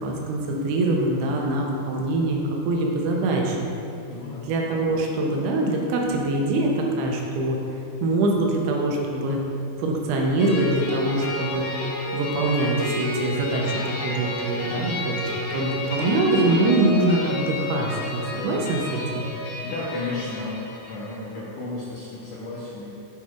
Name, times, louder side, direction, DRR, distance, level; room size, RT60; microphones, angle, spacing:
voice 1, 0.0-3.7 4.5-7.6 8.0-9.4 9.8-11.7 12.1-19.3, right 2 dB, 80° right, 0 dB, 2.6 m, -24 dB
voice 2, 4.1-4.5 19.3-20.6 20.9-22.9, left 2 dB, 90° left, -8 dB, 1.8 m, -33 dB
sound 1, 10.4-21.1, left 1 dB, 70° left, 2.6 m, -31 dB
10.5 x 4.6 x 2.3 m, 2.8 s
omnidirectional pair, 4.7 m